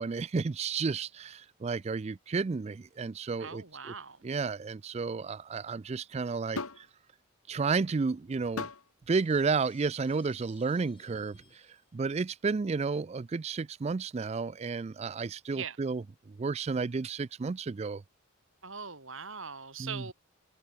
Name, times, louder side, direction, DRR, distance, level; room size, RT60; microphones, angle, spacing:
voice 1, 0.0-3.6 4.2-6.9 7.5-8.7 9.1-18.0 19.8-20.1, right 4 dB, 30° right, 0.3 m, -32 dB
voice 2, 3.4-4.2 15.5-15.8 18.6-20.1, right 6 dB, 65° right, 4.4 m, -41 dB
sound 1, 6.6-6.9 8.6-8.9 9.9-10.1, left 3 dB, 85° left, 2.5 m, -37 dB
Shatter, 9.2-12.0, left 6 dB, 25° left, 5.2 m, -62 dB
head